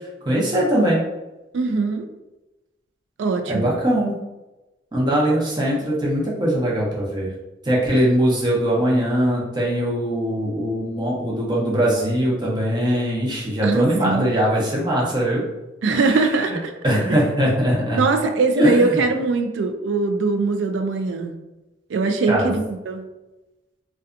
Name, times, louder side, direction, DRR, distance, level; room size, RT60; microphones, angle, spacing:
voice 1, 0.3-1.0 3.5-4.1 4.9-7.3 7.6-15.4 15.9-16.6 16.8-18.0 18.6-19.0 22.3-22.5, equal, 25° right, -4 dB, 0.6 m, -21 dB
voice 2, 1.5-2.1 3.2-3.7 13.6-14.3 15.8-16.7 17.9-21.4 21.9-23.1, right 3 dB, 80° right, 6 dB, 0.3 m, -21 dB
2.6 x 2.2 x 2.4 m, 1.0 s
head